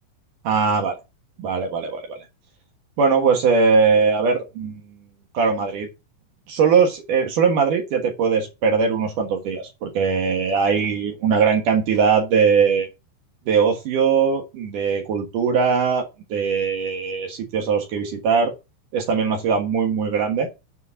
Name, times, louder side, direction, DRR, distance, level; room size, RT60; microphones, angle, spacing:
voice 1, 0.4-1.0 1.4-2.2 3.0-4.8 5.3-5.9 6.5-12.9 13.5-18.5 18.9-20.5, right 5 dB, 70° right, 2.0 m, -20 dB
7.9 x 4.9 x 6.8 m
omnidirectional pair, 5.8 m